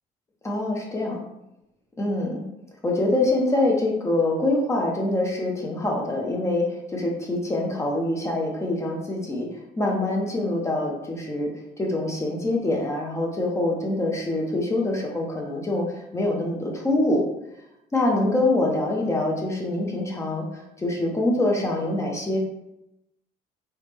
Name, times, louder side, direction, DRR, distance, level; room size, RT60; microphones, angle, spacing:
voice 1, 0.4-1.2 2.0-2.5 2.8-9.5 9.8-11.5 11.8-15.8 16.1-17.2 17.9-20.5 20.8-22.4, left 2 dB, 15° left, -1 dB, 0.5 m, -25 dB
3.2 x 2.0 x 3.3 m, 0.87 s
cardioid pair, 125°, 17 cm